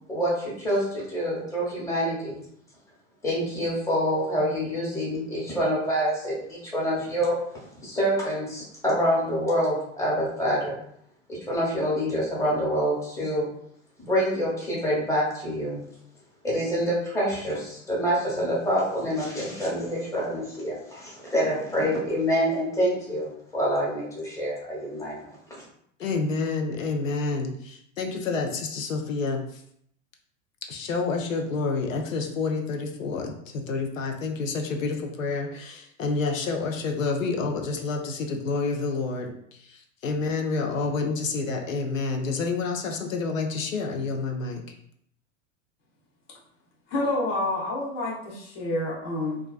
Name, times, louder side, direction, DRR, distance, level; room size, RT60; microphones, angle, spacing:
voice 1, 0.1-2.4 3.2-7.4 7.8-10.8 11.3-13.5 14.0-15.8 16.4-25.2 25.5-25.6, equal, 10° left, -6 dB, 0.9 m, -26 dB
voice 2, 26.0-29.6 30.6-44.6, left 4 dB, 75° left, 3 dB, 0.6 m, -29 dB
voice 3, 46.9-49.4, left 2 dB, 45° left, -3 dB, 0.9 m, -28 dB
2.4 x 2.1 x 2.4 m, 0.70 s
figure-of-eight pair, 90°, 39 cm